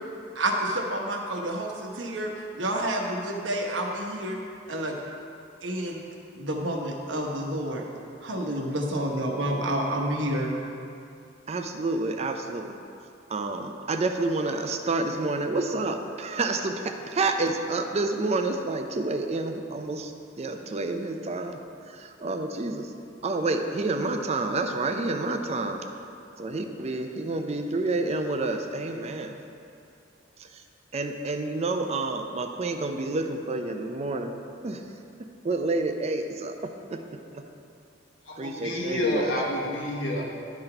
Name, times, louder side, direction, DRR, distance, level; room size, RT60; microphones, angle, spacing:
voice 1, 0.3-4.4 4.7-5.0 5.6-6.0 6.3-7.8 8.2-10.5, right 1 dB, 80° right, 1 dB, 1.0 m, -29 dB
voice 2, 11.5-12.8 13.3-20.1 20.4-21.6 22.2-22.9 23.2-25.8 26.4-29.4 30.9-34.4 34.6-34.8 35.4-37.0 38.4-39.3, right 2 dB, 35° right, 5 dB, 0.5 m, -29 dB
voice 3, 38.2-40.2, left 1 dB, 85° left, -3 dB, 1.4 m, -28 dB
11.5 x 4.0 x 4.4 m, 2.6 s
head